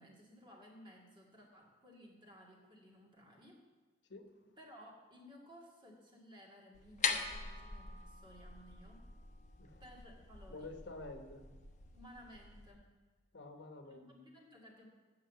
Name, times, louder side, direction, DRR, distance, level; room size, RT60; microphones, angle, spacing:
voice 1, 0.0-3.6 4.6-9.0 9.8-10.7 11.9-12.9 13.9-14.9, equal, 25° right, -1 dB, 2.1 m, -58 dB
sound 1, 6.7-12.7, left 5 dB, 40° left, 0.9 m, -43 dB
voice 2, 10.5-11.4 13.3-14.1, left 2 dB, 75° left, 5 dB, 1.1 m, -49 dB
8.6 x 6.7 x 7.4 m, 1.4 s
head